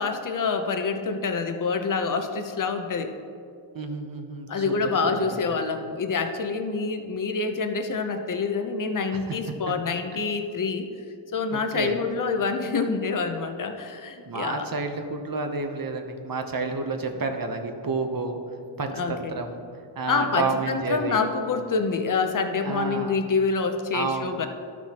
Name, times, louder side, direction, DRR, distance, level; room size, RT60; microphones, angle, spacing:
voice 1, 0.0-3.1 4.5-10.9 11.3-14.7 18.9-19.4 20.1-24.5, left 4 dB, 45° left, 6 dB, 0.7 m, -27 dB
voice 2, 3.7-5.6 9.1-9.4 9.7-9.8 11.5-12.0 14.3-18.4 18.8-19.6 19.9-21.3 22.6-23.2 23.9-24.5, right 4 dB, 45° right, 5 dB, 0.8 m, -30 dB
13.0 x 6.1 x 2.9 m, 2.4 s
wide cardioid pair, 90°, 46 cm